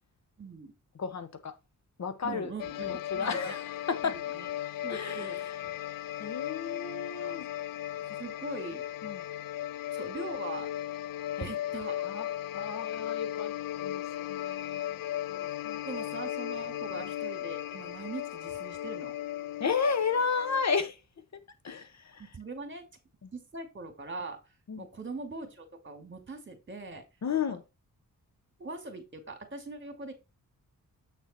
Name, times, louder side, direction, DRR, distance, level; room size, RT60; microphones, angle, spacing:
voice 1, 0.4-0.7 2.2-3.6 4.0-4.5 4.8-5.4 5.6-5.8 7.2-7.4 8.2-8.8 9.9-10.7 11.4-12.1 15.3-19.1 22.2-22.9 23.3-24.4 24.8-27.0 27.5-27.6 28.6-30.1, right 3 dB, 35° right, 2.5 m, -42 dB
voice 2, 1.0-1.5 2.0-2.5 2.8-3.6 3.9-4.1 4.9-5.6 6.2-7.5 9.0-9.2 11.4-11.5 12.0-12.3 12.5-13.5 13.8-14.0 14.3-15.0 15.3-15.8 19.6-21.0 21.6-22.2 24.7-24.8 27.2-27.6, left 5 dB, 55° left, 1.1 m, -32 dB
sound 1, 2.6-20.6, left 12 dB, 85° left, 0.5 m, -36 dB
8.1 x 4.0 x 4.3 m
cardioid pair, 75°, 33 cm